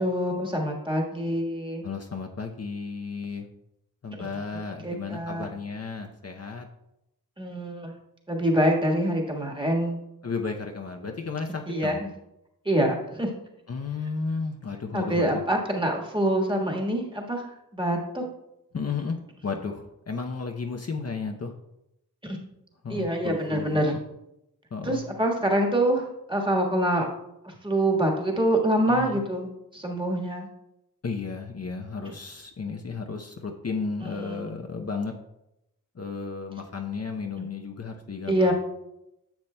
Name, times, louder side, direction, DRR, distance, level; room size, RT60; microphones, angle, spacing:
voice 1, 0.0-1.8 4.2-4.3 4.8-5.5 7.4-7.9 8.3-10.0 11.7-12.1 12.6-13.3 14.9-17.4 17.7-18.2 22.2-22.4 22.9-23.9 24.8-27.1 27.4-30.5 34.0-34.4 38.3-38.5, right 1 dB, 15° right, 0 dB, 1.5 m, -25 dB
voice 2, 1.8-3.5 4.0-6.7 10.2-12.0 13.7-15.4 18.7-19.2 19.4-21.5 22.8-24.0 24.7-25.0 28.9-29.2 31.0-35.2 36.0-38.5, left 4 dB, 45° left, 3 dB, 0.7 m, -33 dB
10.5 x 7.0 x 2.2 m, 0.86 s
wide cardioid pair, 70°, 35 cm